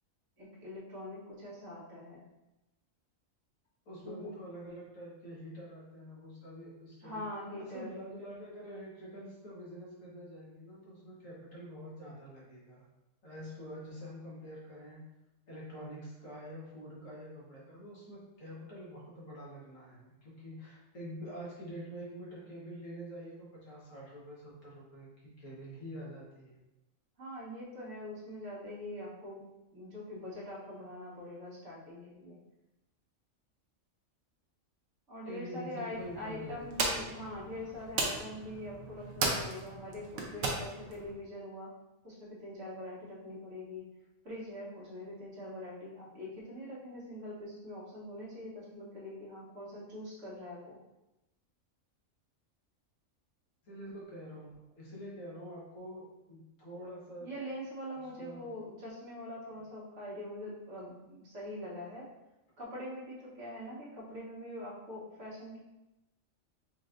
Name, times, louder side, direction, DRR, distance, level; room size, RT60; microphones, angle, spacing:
voice 1, 0.4-2.2 4.0-4.3 7.0-8.3 27.2-29.4 29.7-32.4 35.1-41.7 42.0-43.8 44.2-50.8 57.2-62.1 62.6-65.6, left 1 dB, 65° right, -7 dB, 1.6 m, -43 dB
voice 2, 3.8-7.2 7.6-12.8 13.2-15.1 15.5-26.6 35.3-36.6 53.6-57.3 57.9-58.5, equal, 75° left, -6 dB, 1.8 m, -46 dB
sound 1, 35.9-41.1, right 3 dB, 85° right, 1.2 m, -36 dB
5.3 x 3.1 x 2.5 m, 0.96 s
omnidirectional pair, 1.4 m